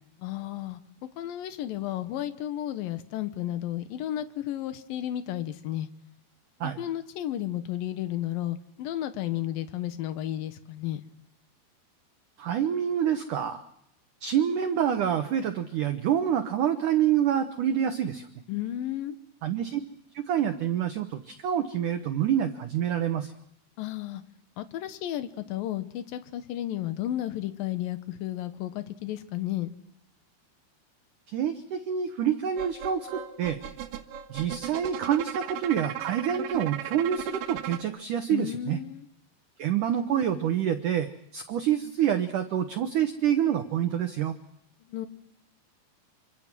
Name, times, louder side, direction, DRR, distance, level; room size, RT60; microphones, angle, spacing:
voice 1, 0.2-0.8 1.2-5.9 6.6-11.0 18.5-19.2 23.8-24.2 24.6-29.7 38.3-39.1 44.9-45.1, left 13 dB, 70° left, 11 dB, 2.3 m, -33 dB
voice 2, 12.4-13.6 14.2-18.3 19.4-19.8 20.1-23.3 31.3-33.6 34.3-38.8 39.6-44.4, right 9 dB, 90° right, 8 dB, 1.7 m, -27 dB
sound 1, 32.6-37.8, right 10 dB, 75° right, 3.5 m, -37 dB
26.5 x 25.5 x 6.1 m, 0.76 s
omnidirectional pair, 5.4 m